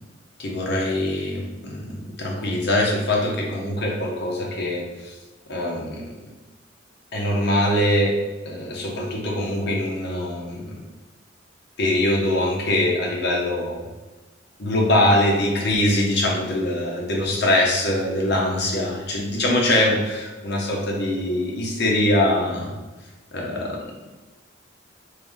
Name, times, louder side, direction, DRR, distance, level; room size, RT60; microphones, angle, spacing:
voice 1, 0.4-1.9 2.2-5.1 5.5-6.0 7.1-8.1 8.4-10.8 11.8-13.8 14.6-22.7 23.3-23.8, left 1 dB, 60° left, -2 dB, 0.8 m, -23 dB
3.2 x 2.6 x 3.5 m, 1.2 s
head